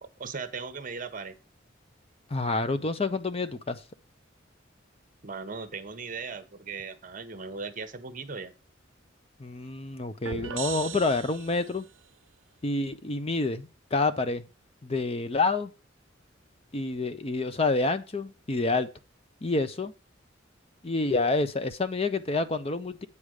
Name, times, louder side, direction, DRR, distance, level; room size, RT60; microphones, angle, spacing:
voice 1, 0.0-1.3 5.2-8.5, right 4 dB, 45° right, 11 dB, 0.9 m, -38 dB
voice 2, 2.3-3.8 9.4-11.9 12.6-14.4 14.8-15.7 16.7-18.9 19.4-19.9 20.8-23.1, left 3 dB, 30° left, 11 dB, 0.6 m, -28 dB
sound 1, 10.2-11.9, right 9 dB, 80° right, 0.5 m, -38 dB
8.5 x 5.0 x 6.3 m, 0.31 s
head